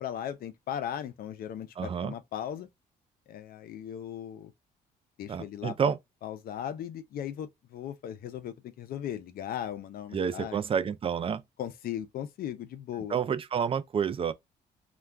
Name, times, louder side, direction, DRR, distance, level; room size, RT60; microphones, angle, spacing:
voice 1, 0.0-2.7 3.3-4.5 5.2-5.9 6.2-10.6 11.6-13.2, left 10 dB, 60° left, 0.5 m, -37 dB
voice 2, 1.8-2.1 5.3-6.0 10.1-11.4 13.1-14.3, right 7 dB, 35° right, 0.4 m, -29 dB
2.3 x 2.2 x 3.3 m
cardioid pair, 100°, 17 cm